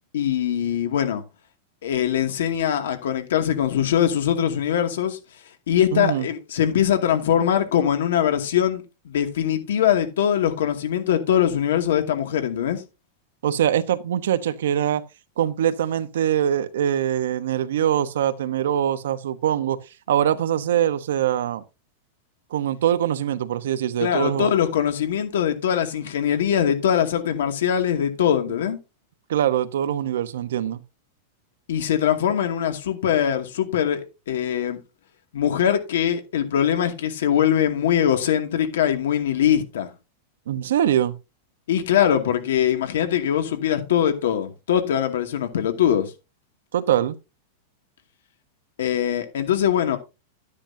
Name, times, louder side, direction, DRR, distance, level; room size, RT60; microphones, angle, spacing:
voice 1, 0.1-1.2 1.8-5.2 5.7-12.8 24.0-28.8 31.7-34.8 35.3-39.9 41.7-46.1 48.8-50.0, left 9 dB, 90° left, 2.3 m, -22 dB
voice 2, 5.9-6.3 13.4-15.0 15.4-19.8 20.1-21.6 22.5-24.5 29.3-30.8 40.5-41.1 46.7-47.2, right 10 dB, 90° right, 1.0 m, -23 dB
12.0 x 9.9 x 2.8 m
supercardioid pair, 175°, 0 cm